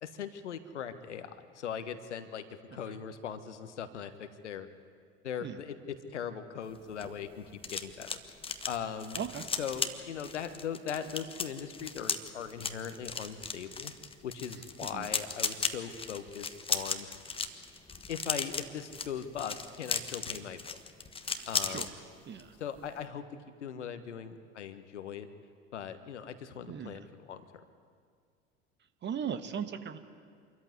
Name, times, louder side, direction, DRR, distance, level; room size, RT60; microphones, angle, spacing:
voice 1, 0.0-2.4 2.7-4.7 5.2-8.2 8.6-9.2 9.6-13.9 14.2-17.1 18.1-20.8 21.2-21.9 22.6-23.3 23.6-25.3 25.7-27.4, left 8 dB, 80° left, 10 dB, 1.4 m, -40 dB
sound 1, 6.7-21.9 22.2-22.5 22.8-23.0, left 4 dB, 15° left, 1.3 m, -36 dB
voice 2, 21.3-21.9 22.3-22.5 26.7-27.0 29.0-30.0, right 7 dB, 30° right, 10 dB, 1.5 m, -38 dB
25.5 x 14.0 x 9.6 m, 2.1 s
figure-of-eight pair, 75°, 35 cm